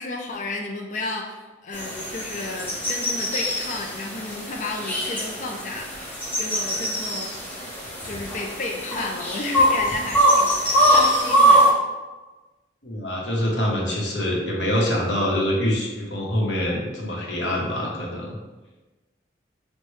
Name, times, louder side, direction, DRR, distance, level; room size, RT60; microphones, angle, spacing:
voice 1, 0.0-7.3 8.0-11.7, left 2 dB, 40° left, 0 dB, 0.4 m, -32 dB
sound 1, 1.7-11.7, right 1 dB, 10° left, 0.8 m, -22 dB
voice 2, 12.8-18.4, left 1 dB, 70° left, -2 dB, 0.9 m, -25 dB
5.3 x 2.2 x 3.2 m, 1.2 s
head